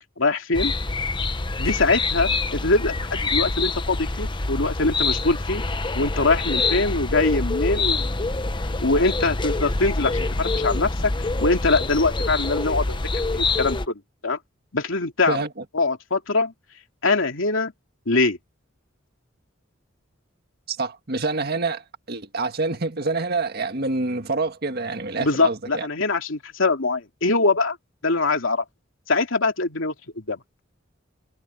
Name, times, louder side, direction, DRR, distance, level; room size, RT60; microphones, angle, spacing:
voice 1, 0.2-0.7 1.6-5.6 5.9-8.2 8.8-10.9 11.4-13.0 13.3-14.4 14.7-15.4 15.7-16.5 17.0-17.7 18.1-18.4 25.2-27.8 28.0-28.6 29.1-30.4, left 3 dB, 85° left, 2.7 m, -23 dB
sound 1, 0.5-13.9, left 3 dB, 25° left, 0.9 m, -26 dB
voice 2, 20.7-25.9, right 3 dB, 55° right, 1.7 m, -27 dB
head